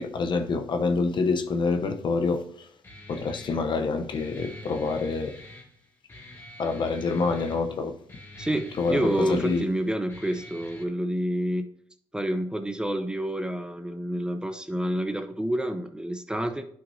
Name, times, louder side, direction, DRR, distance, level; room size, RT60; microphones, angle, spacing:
voice 1, 0.0-2.7 3.1-5.3 6.6-7.9 8.8-9.6, left 4 dB, 50° left, 0.8 m, -27 dB
Guitar, 2.8-10.8, left 1 dB, 25° left, 2.2 m, -46 dB
voice 2, 8.4-11.7 12.1-16.6, right 1 dB, 10° right, 0.7 m, -28 dB
10.5 x 5.9 x 2.8 m
supercardioid pair, 65°, 10 cm